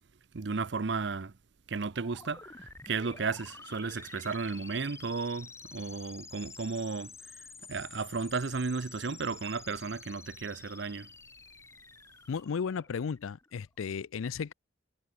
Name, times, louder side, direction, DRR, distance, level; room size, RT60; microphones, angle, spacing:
voice 1, 0.3-1.3 1.7-11.1, right 4 dB, 60° right, 0.6 m, -34 dB
sound 1, 1.9-13.6, left 4 dB, 15° left, 0.7 m, -50 dB
voice 2, 12.3-14.5, left 6 dB, 85° left, 0.4 m, -34 dB
head